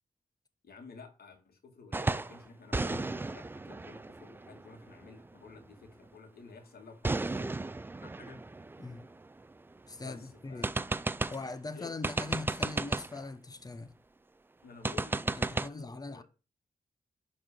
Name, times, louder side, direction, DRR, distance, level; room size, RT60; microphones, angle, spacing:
voice 1, 0.6-7.5 8.0-8.4 10.0-10.7 11.3-11.4 11.6-12.0 14.6-16.2, left 4 dB, 80° left, 2.3 m, -52 dB
sound 1, 1.9-2.4 2.7-5.3 7.0-9.8 10.1-10.2 10.6-11.5 12.0-13.2 14.8-15.7, right 2 dB, 15° right, 0.3 m, -34 dB
voice 2, 9.9-10.7 11.3-13.9 15.4-16.2, left 3 dB, 25° left, 0.8 m, -41 dB
10.5 x 4.3 x 5.1 m
wide cardioid pair, 155°, 16 cm